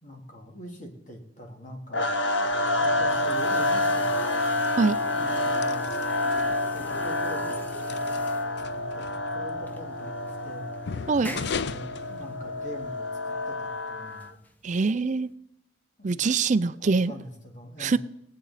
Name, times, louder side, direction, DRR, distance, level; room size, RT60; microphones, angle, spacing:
voice 1, 0.0-2.1 2.8-4.5 5.1-5.9 6.6-8.0 8.7-10.7 11.2-14.4 16.0-16.3 16.8-18.0, equal, 45° left, 2 dB, 2.2 m, -43 dB
sound 1, 1.9-14.3, left 1 dB, 85° left, 1.0 m, -28 dB
sound 2, 2.4-12.9, left 5 dB, 65° left, 0.4 m, -40 dB
sound 3, 2.9-15.3, equal, 10° left, 0.9 m, -47 dB
voice 2, 14.6-15.3 16.0-17.1 17.8-18.0, right 4 dB, 40° right, 15 dB, 0.4 m, -23 dB
20.5 x 8.5 x 4.1 m, 0.82 s
head